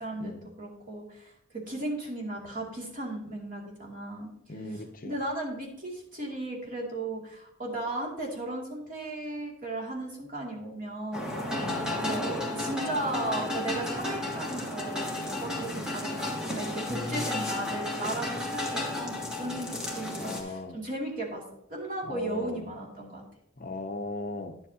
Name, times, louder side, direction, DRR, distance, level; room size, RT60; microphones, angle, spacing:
voice 1, 0.0-0.3 0.6-4.3 5.0-11.3 12.0-16.3 16.5-21.4 21.7-23.2, right 1 dB, 45° right, 2.5 m, -35 dB
voice 2, 4.5-5.2 11.6-12.0 16.9-17.7 20.2-20.8 22.1-22.7 23.6-24.6, left 2 dB, 45° left, 0.7 m, -38 dB
sound 1, 11.1-20.4, left 1 dB, 5° right, 1.6 m, -33 dB
10.5 x 7.9 x 2.8 m
head